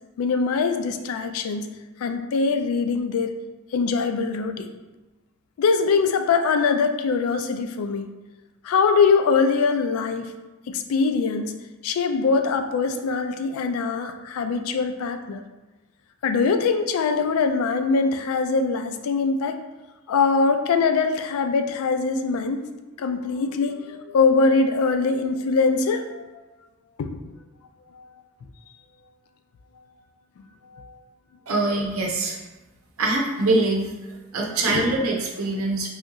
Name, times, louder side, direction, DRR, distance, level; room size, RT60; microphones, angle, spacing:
voice 1, 0.2-1.7 2.0-3.3 3.7-4.7 5.6-8.1 8.6-10.3 10.7-11.5 11.8-15.4 16.2-19.6 20.1-22.6 23.0-26.4 27.0-27.2 27.9-28.1 30.7-31.0 34.7-34.9, left 4 dB, 85° left, 7 dB, 0.3 m, -22 dB
voice 2, 31.5-32.4 33.0-33.9 34.3-35.9, right 2 dB, 85° right, -1 dB, 0.7 m, -23 dB
3.4 x 2.7 x 2.6 m, 1.1 s
head